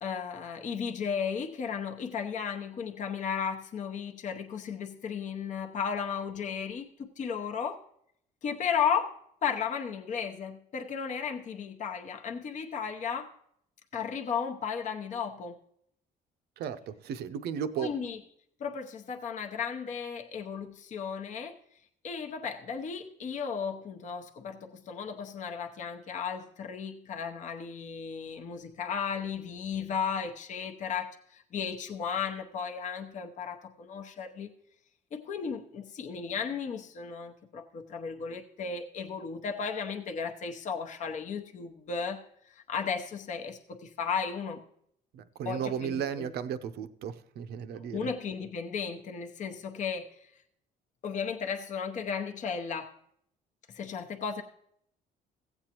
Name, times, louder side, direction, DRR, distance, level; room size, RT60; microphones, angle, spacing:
voice 1, 0.0-7.8 8.4-13.3 13.9-15.6 17.8-18.2 18.6-21.6 22.0-34.5 35.1-44.6 45.4-46.3 47.7-50.3 51.0-53.0 53.7-54.4, left 6 dB, 45° left, 3 dB, 0.8 m, -35 dB
voice 2, 16.6-17.9 45.1-48.1, right 8 dB, 70° right, 11 dB, 0.7 m, -35 dB
15.5 x 7.9 x 2.9 m, 0.70 s
cardioid pair, 110°, 17 cm